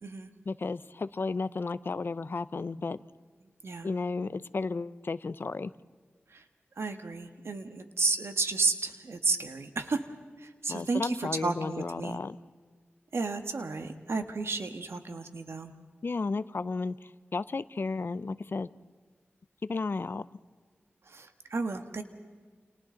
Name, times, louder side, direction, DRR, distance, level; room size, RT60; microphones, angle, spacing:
voice 1, 0.5-3.0 3.8-5.7 10.7-12.4 16.0-18.7 19.6-20.2, left 4 dB, 55° left, 15 dB, 0.6 m, -33 dB
voice 2, 6.8-10.0 10.4-12.2 13.1-15.7 21.0-22.0, right 3 dB, 70° right, 7 dB, 1.5 m, -32 dB
29.5 x 27.5 x 3.9 m, 1.5 s
wide cardioid pair, 75°, 5 cm